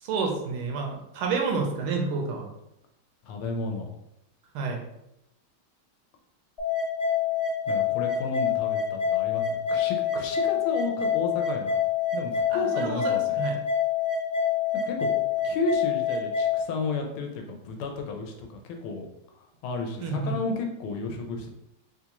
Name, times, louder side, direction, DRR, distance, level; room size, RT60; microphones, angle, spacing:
voice 1, 0.0-2.5 4.5-4.8 12.5-13.0 13.3-13.5 20.0-20.4, right 4 dB, 85° right, 1 dB, 1.6 m, -29 dB
voice 2, 3.2-3.9 7.7-11.8 12.1-13.2 14.9-15.1 15.4-19.1 19.3-21.5, left 3 dB, 85° left, 3 dB, 1.5 m, -32 dB
sound 1, 6.6-16.6, left 7 dB, 40° left, 0.3 m, -26 dB
4.1 x 2.4 x 2.9 m, 0.83 s
omnidirectional pair, 2.3 m